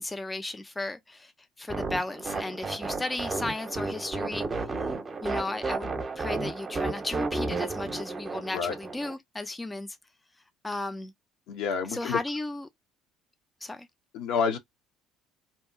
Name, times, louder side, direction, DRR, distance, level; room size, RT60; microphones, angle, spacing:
voice 1, 0.0-1.3 1.6-4.9 5.2-10.0 10.6-11.1 11.9-12.7 13.6-13.9, left 2 dB, 15° left, 0.5 m, -35 dB
sound 1, 1.7-9.1, right 3 dB, 35° right, 0.8 m, -33 dB
voice 2, 11.5-12.2 14.1-14.6, left 6 dB, 65° left, 0.8 m, -28 dB
2.7 x 2.1 x 2.5 m
hypercardioid pair, 60°, 0 cm